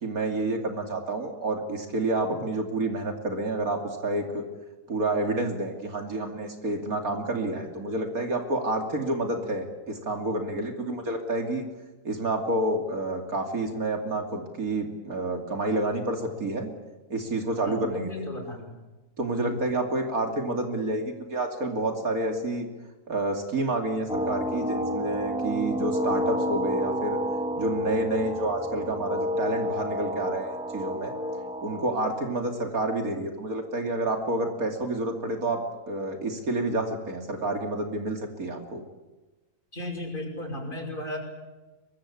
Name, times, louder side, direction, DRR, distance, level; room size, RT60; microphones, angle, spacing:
voice 1, 0.0-4.4 4.9-11.6 12.0-16.7 17.1-18.3 19.2-22.7 23.1-27.2 27.6-31.1 31.6-38.8, right 2 dB, 70° right, 4 dB, 3.2 m, -29 dB
voice 2, 17.6-18.7 19.3-19.6 39.7-41.2, left 1 dB, 35° left, 3 dB, 6.2 m, -35 dB
sound 1, 24.1-32.2, equal, 5° right, 2.9 m, -30 dB
23.5 x 23.5 x 8.6 m, 1.1 s
omnidirectional pair, 1.6 m